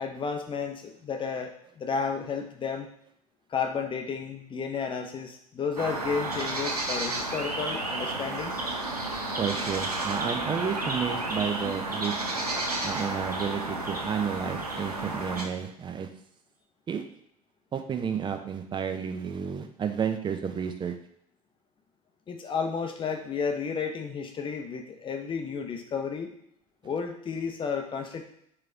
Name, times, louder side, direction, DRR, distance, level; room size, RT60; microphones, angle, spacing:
voice 1, 0.0-2.9 3.5-8.6 22.3-26.3 26.8-28.2, left 5 dB, 25° left, 5 dB, 0.8 m, -32 dB
sound 1, 5.8-15.5, right 2 dB, 90° right, 0.6 m, -32 dB
voice 2, 9.4-12.1 12.8-16.1 16.9-17.0 17.7-21.0, right 7 dB, 25° right, 7 dB, 0.6 m, -31 dB
4.7 x 2.9 x 3.8 m, 0.69 s
figure-of-eight pair, 70°, 19 cm